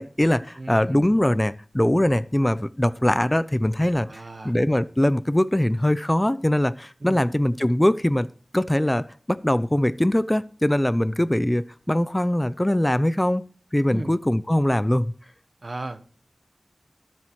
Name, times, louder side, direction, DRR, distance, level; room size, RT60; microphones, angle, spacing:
voice 1, 0.0-8.3 8.5-15.1, left 1 dB, 15° left, 14 dB, 0.5 m, -22 dB
voice 2, 0.6-1.0 4.1-4.5 7.0-7.2 13.9-14.1 15.6-16.0, right 2 dB, 60° right, 10 dB, 1.3 m, -35 dB
21.5 x 7.5 x 3.1 m, 0.42 s
wide cardioid pair, 60°, 0 cm